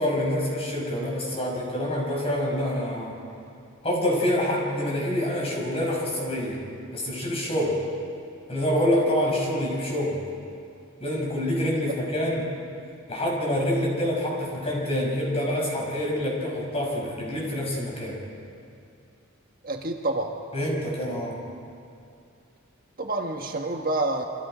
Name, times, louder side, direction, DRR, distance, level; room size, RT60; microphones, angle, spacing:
voice 1, 0.0-3.1 3.8-6.6 6.9-7.8 8.5-10.2 11.0-12.5 13.1-18.2 20.5-21.4, left 1 dB, 30° left, -2 dB, 5.9 m, -26 dB
voice 2, 19.6-20.4 23.0-24.2, right 2 dB, 45° right, 2 dB, 1.5 m, -28 dB
28.5 x 25.5 x 5.1 m, 2.5 s
head